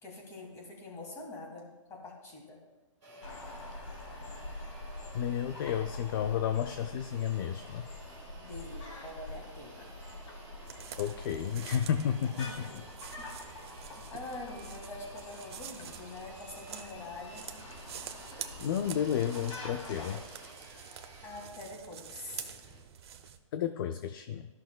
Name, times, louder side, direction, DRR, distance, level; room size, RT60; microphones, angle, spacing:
voice 1, 0.0-2.6 8.4-9.9 12.5-12.8 13.2-13.6 13.9-17.5 21.2-22.5, left 2 dB, 15° left, 0 dB, 1.7 m, -45 dB
sound 1, 3.0-22.8, right 1 dB, 15° right, 2.6 m, -53 dB
sound 2, 3.2-20.2, left 2 dB, 65° left, 2.2 m, -46 dB
voice 2, 5.1-7.9 11.0-12.8 18.6-20.2 23.5-24.5, left 9 dB, 40° left, 8 dB, 0.4 m, -32 dB
sound 3, 10.7-23.4, right 8 dB, 50° right, 0.7 m, -47 dB
13.5 x 5.7 x 2.2 m, 1.2 s
hypercardioid pair, 145°, 17 cm